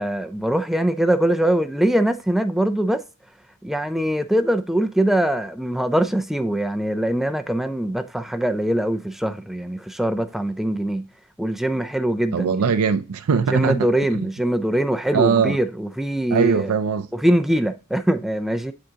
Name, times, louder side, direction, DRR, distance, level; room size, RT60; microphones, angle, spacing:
voice 1, 0.0-3.0 3.6-11.0 11.4-12.5 13.5-16.7 17.1-18.7, right 1 dB, ahead, 0.3 m, -22 dB
voice 2, 12.3-13.9 14.2-14.3 15.1-15.6 16.3-17.1, right 6 dB, 85° right, 0.4 m, -20 dB
10.5 x 3.6 x 2.8 m
head